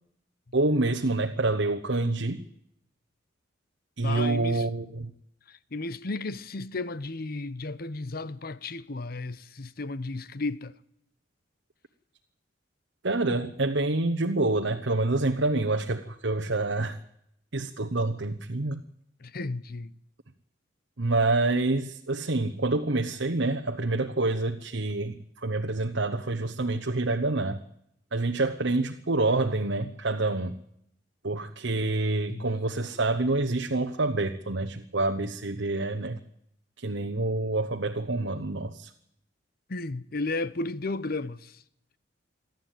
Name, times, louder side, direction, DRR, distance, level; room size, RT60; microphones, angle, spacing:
voice 1, 0.5-2.4 4.0-5.1 13.0-17.0 17.5-18.8 21.0-27.6 28.1-30.5 31.2-36.2 36.8-38.9, right 2 dB, 75° right, 1.1 m, -27 dB
voice 2, 4.0-4.7 5.5-10.7 19.2-19.9 31.8-31.9 32.3-32.7 39.7-41.6, left 2 dB, 50° left, 0.8 m, -34 dB
27.5 x 12.0 x 9.2 m
head